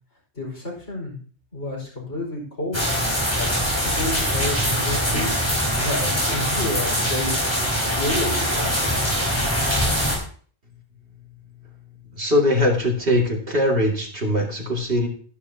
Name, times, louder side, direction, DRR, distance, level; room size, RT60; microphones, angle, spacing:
voice 1, 0.4-1.2 1.5-2.8 3.4-3.5 3.8-5.4 5.8-9.0, left 2 dB, 70° left, -2 dB, 5.3 m, -30 dB
sound 1, 2.7-10.2, equal, 10° left, 4.7 m, -23 dB
voice 2, 12.2-15.1, left 1 dB, 55° right, 0 dB, 2.6 m, -21 dB
13.0 x 11.5 x 2.8 m, 0.43 s
omnidirectional pair, 1.2 m